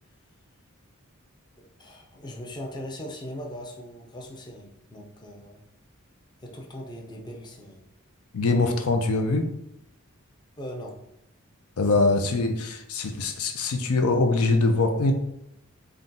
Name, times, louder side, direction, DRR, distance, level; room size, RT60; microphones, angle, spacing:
voice 1, 1.6-5.6 6.4-7.8 10.6-11.0, equal, 20° left, 0 dB, 0.5 m, -39 dB
voice 2, 8.3-9.5 11.8-15.1, left 3 dB, 85° left, 5 dB, 0.6 m, -23 dB
3.7 x 2.2 x 3.9 m, 0.78 s
head